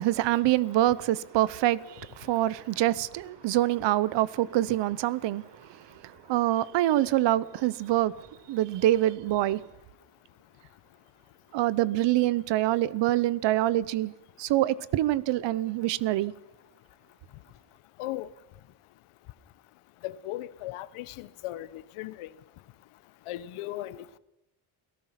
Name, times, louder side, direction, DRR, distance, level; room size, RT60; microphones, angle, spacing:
voice 1, 0.0-8.1 8.5-9.6 11.5-14.1 14.4-16.3, right 14 dB, 60° right, 0.9 m, -25 dB
voice 2, 20.0-22.3 23.3-24.2, left 15 dB, 90° left, 1.1 m, -37 dB
29.0 x 18.0 x 5.9 m
cardioid pair, 165°, 49 cm